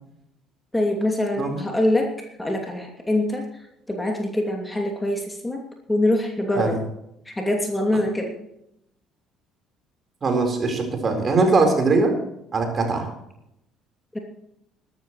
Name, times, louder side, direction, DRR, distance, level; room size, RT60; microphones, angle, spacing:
voice 1, 0.7-2.1 2.4-3.4 3.9-5.6 5.9-6.8 7.3-8.3 14.1-14.2, left 1 dB, 10° left, 2 dB, 2.7 m, -24 dB
voice 2, 10.2-12.1 12.5-13.1, right 3 dB, 35° right, 4 dB, 4.3 m, -21 dB
22.5 x 12.5 x 3.2 m, 0.80 s
figure-of-eight pair, 55°, 0 cm